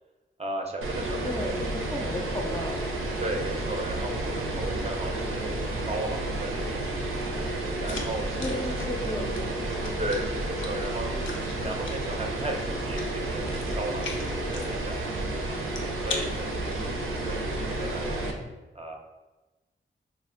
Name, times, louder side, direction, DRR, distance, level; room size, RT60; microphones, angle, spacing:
voice 1, 0.4-1.5 3.2-7.3 7.8-8.6 10.0-13.5 13.8-15.6 16.0-18.2 18.7-19.0, right 1 dB, 30° right, 2 dB, 0.5 m, -36 dB
sound 1, 0.8-18.3, right 2 dB, 80° right, 0.5 m, -31 dB
voice 2, 1.2-2.8 8.4-9.5, left 1 dB, 20° left, 1 dB, 0.5 m, -33 dB
sound 2, 7.9-17.3, left 3 dB, 70° left, 0.5 m, -42 dB
3.3 x 2.5 x 2.5 m, 1.1 s
cardioid pair, 40°, 21 cm